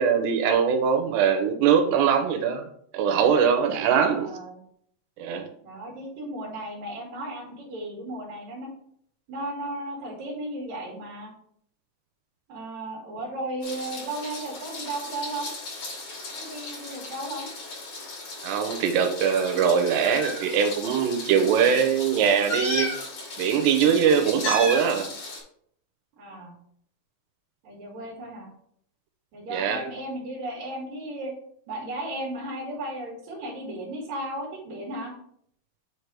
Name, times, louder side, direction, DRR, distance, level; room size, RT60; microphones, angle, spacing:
voice 1, 0.0-2.7 2.9-4.3 5.2-5.5 18.4-22.9 23.4-25.1 29.5-29.9, right 7 dB, 85° right, 5 dB, 2.7 m, -22 dB
voice 2, 3.9-4.6 5.6-8.7 9.3-11.3 12.5-15.5 16.3-17.5 24.1-24.3 26.2-26.5 27.6-28.5 29.3-31.3 31.7-35.1, right 1 dB, 55° right, -5 dB, 2.5 m, -35 dB
Meow, 13.6-25.4, left 2 dB, 50° left, 3.4 m, -35 dB
7.8 x 3.4 x 5.0 m, 0.66 s
omnidirectional pair, 4.9 m